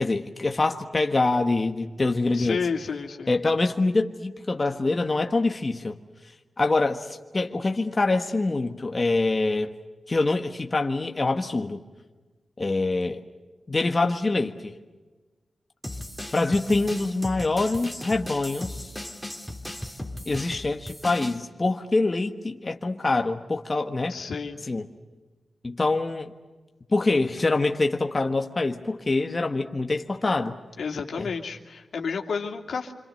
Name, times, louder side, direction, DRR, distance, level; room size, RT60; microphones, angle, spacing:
voice 1, 0.0-2.7 3.3-6.0 6.6-9.7 10.1-11.8 12.6-13.2 13.7-14.7 16.3-18.9 20.2-24.2 24.7-24.9 25.6-26.3 26.9-30.6 31.2-31.3, left 3 dB, 35° left, 4 dB, 1.5 m, -25 dB
voice 2, 2.3-3.3 24.1-24.6 30.8-32.9, left 5 dB, 85° left, 2 dB, 2.7 m, -31 dB
sound 1, 15.8-21.4, left 1 dB, ahead, 2.8 m, -37 dB
27.5 x 25.5 x 6.7 m, 1.2 s
wide cardioid pair, 80°, 0 cm